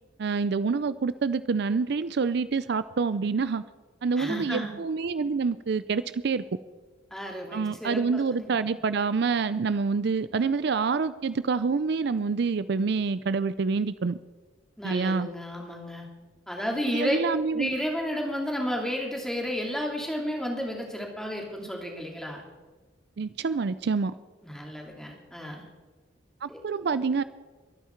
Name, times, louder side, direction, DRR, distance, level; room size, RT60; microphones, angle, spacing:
voice 1, 0.2-3.6 4.0-6.4 7.5-14.2 14.8-15.3 16.8-17.7 23.2-24.1 26.4-27.2, right 4 dB, 60° right, 15 dB, 0.4 m, -27 dB
voice 2, 4.2-4.7 7.1-8.0 8.4-8.6 14.8-16.1 16.5-17.2 17.5-22.4 24.4-25.6 26.5-26.6, equal, 5° left, 0 dB, 2.6 m, -32 dB
23.0 x 9.4 x 4.5 m, 1.3 s
head